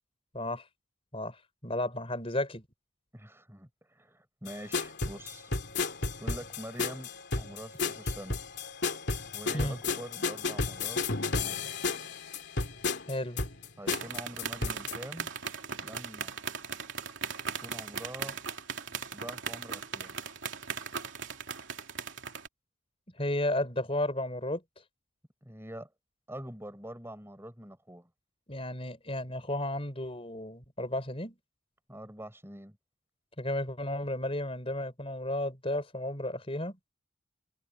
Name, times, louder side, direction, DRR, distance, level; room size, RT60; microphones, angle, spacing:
voice 1, 0.3-0.6 1.1-1.4 1.6-2.6 9.5-9.8 13.1-13.4 23.2-24.6 28.5-31.4 33.4-36.7, left 1 dB, 25° left, 4.6 m, -33 dB
voice 2, 3.1-5.5 6.2-8.4 9.3-11.7 13.8-15.3 15.8-16.3 17.6-18.4 19.1-20.2 25.4-25.9 26.3-28.1 31.9-32.8, right 1 dB, 10° right, 5.4 m, -45 dB
sound 1, 4.5-14.9, left 3 dB, 55° left, 2.8 m, -33 dB
sound 2, 13.9-22.5, right 6 dB, 60° right, 3.2 m, -38 dB
head